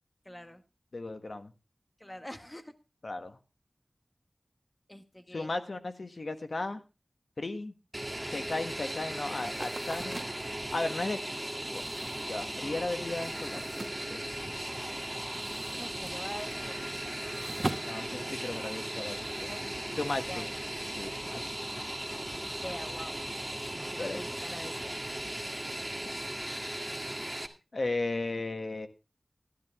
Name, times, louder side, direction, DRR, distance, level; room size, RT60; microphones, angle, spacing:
voice 1, 0.2-0.6 2.0-2.7 4.9-5.5 15.8-17.6 19.4-19.8 20.3-20.5 22.4-23.2 23.7-25.0, equal, 20° left, 8 dB, 1.6 m, -45 dB
voice 2, 0.9-1.5 3.0-3.4 5.3-6.8 7.4-7.7 8.3-10.2 10.7-11.2 11.7-11.8 12.3-13.6 14.1-14.5 17.8-19.5 20.0-20.5 21.0-21.4 24.0-24.2 27.7-28.9, left 2 dB, 75° left, 8 dB, 1.4 m, -35 dB
Fixed-wing aircraft airplane, 7.9-27.5, right 1 dB, 15° right, 1.7 m, -37 dB
sound 1, 9.3-14.7 15.0-18.9, right 2 dB, 40° right, 1.8 m, -43 dB
13.0 x 11.5 x 3.6 m, 0.29 s
wide cardioid pair, 50°, 0 cm